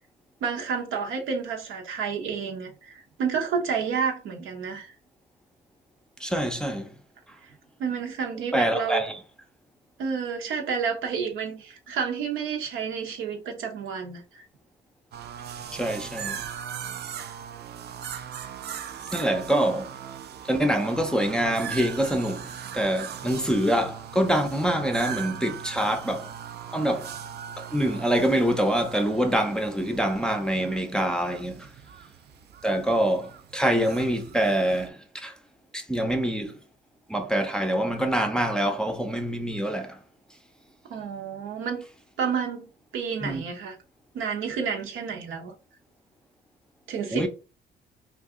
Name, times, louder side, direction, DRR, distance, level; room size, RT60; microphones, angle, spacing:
voice 1, 0.4-4.9 7.4-7.5 7.8-9.1 10.0-14.5 40.9-41.8 42.2-43.8 44.1-45.5 46.9-47.3, right 6 dB, 80° right, 0.9 m, -30 dB
voice 2, 6.2-6.9 8.5-9.2 15.7-16.4 19.1-19.9 20.4-26.3 26.7-27.1 27.6-31.7 32.6-35.4 35.7-36.5 37.1-40.0 43.2-43.4 47.1-47.3, right 1 dB, 5° left, 0.5 m, -25 dB
sound 1, 15.1-34.9, right 8 dB, 55° right, 0.4 m, -39 dB
2.6 x 2.4 x 3.6 m
cardioid pair, 90°, 20 cm